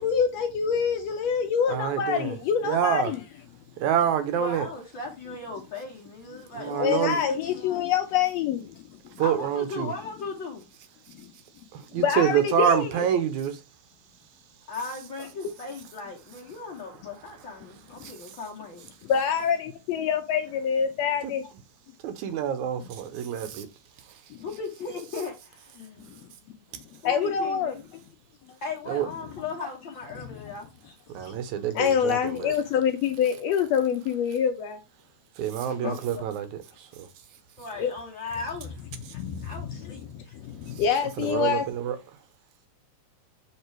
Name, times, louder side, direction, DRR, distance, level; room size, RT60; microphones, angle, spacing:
voice 1, 0.0-3.2 6.8-9.2 11.1-11.3 11.9-12.9 19.1-21.4 24.3-24.4 26.0-26.3 27.0-28.0 30.2-30.5 31.2-31.3 31.7-34.8 37.8-37.9 39.1-41.6, left 7 dB, 80° left, 1.5 m, -26 dB
voice 2, 1.7-2.4 2.6-3.1 3.8-4.7 6.6-7.2 9.2-9.9 11.7-13.6 18.0-18.1 22.0-23.7 28.9-29.1 31.1-32.5 35.4-36.9 41.2-42.0, right 9 dB, 75° right, 2.1 m, -27 dB
voice 3, 4.4-7.8 9.2-10.7 14.7-18.8 21.4-21.5 24.4-26.1 27.0-27.8 28.6-30.7 35.6-36.2 37.6-38.7 39.1-40.3, left 4 dB, 60° left, 1.2 m, -37 dB
6.7 x 3.7 x 4.5 m
omnidirectional pair, 3.5 m